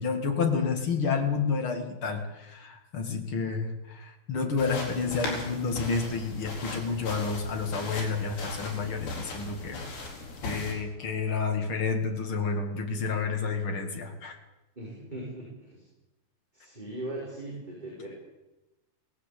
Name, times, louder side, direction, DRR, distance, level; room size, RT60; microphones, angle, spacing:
voice 1, 0.0-9.8 10.4-14.3, left 5 dB, 40° left, 4 dB, 2.5 m, -30 dB
sound 1, 4.6-10.7, left 3 dB, 80° left, 6.7 m, -38 dB
voice 2, 14.8-15.9 16.5-18.1, right 1 dB, 10° right, -5 dB, 5.2 m, -39 dB
18.5 x 16.5 x 8.6 m, 1.0 s
omnidirectional pair, 4.9 m